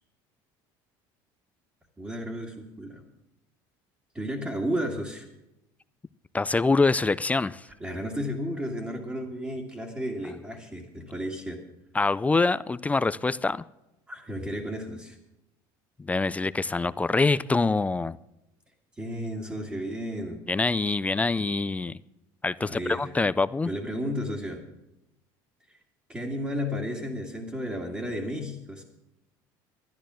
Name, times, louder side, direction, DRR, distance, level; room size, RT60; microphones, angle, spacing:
voice 1, 2.0-3.0 4.1-5.3 7.8-11.6 14.1-15.2 19.0-20.4 22.6-23.1 23.7-24.6 25.7-25.8 26.1-28.8, equal, 15° right, 2.2 m, -33 dB
voice 2, 6.3-7.7 11.9-13.6 16.0-18.2 20.5-22.0 22.4-23.7, left 3 dB, 15° left, 0.3 m, -25 dB
12.5 x 10.0 x 6.2 m
supercardioid pair, 110°, 10 cm